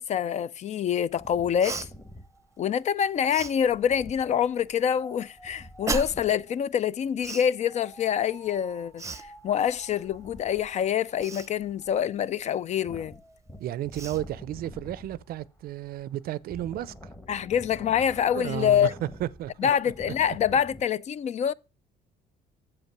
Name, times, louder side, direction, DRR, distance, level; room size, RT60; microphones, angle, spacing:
voice 1, 0.0-1.8 2.6-13.2 17.3-18.9 19.6-21.5, left 9 dB, 45° left, 0.4 m, -26 dB
Wind, 1.1-6.5 7.6-20.8, equal, 15° left, 1.3 m, -48 dB
Cough, 1.6-1.9 3.3-3.5 5.9-6.3 7.2-7.5 9.0-9.2 11.2-11.5 13.3-13.4 13.9-14.2, right 4 dB, 20° right, 0.7 m, -33 dB
voice 2, 13.6-17.1 18.3-19.7, right 13 dB, 60° right, 0.5 m, -33 dB
7.3 x 5.4 x 5.9 m
cardioid pair, 110°, 17 cm